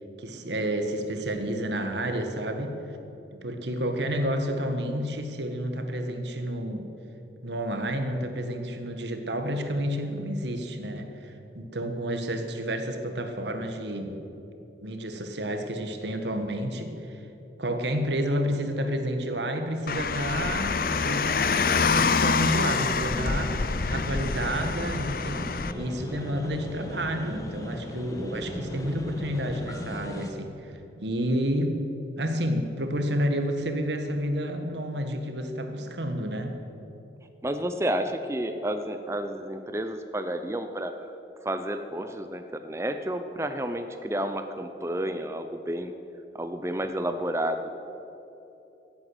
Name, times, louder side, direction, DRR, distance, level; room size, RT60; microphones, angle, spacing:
voice 1, 0.2-2.8 3.3-6.9 7.4-14.3 14.8-17.2 17.6-21.6 21.9-31.8 32.2-36.6, equal, 85° right, 6 dB, 1.5 m, -30 dB
Car, 19.9-25.7, left 5 dB, 55° left, 0.5 m, -26 dB
sound 1, 22.3-30.3, left 1 dB, 20° left, 1.2 m, -37 dB
voice 2, 37.4-41.1 41.4-45.9 46.3-47.8, right 1 dB, 15° right, 8 dB, 0.5 m, -31 dB
16.0 x 8.9 x 8.0 m, 3.0 s
head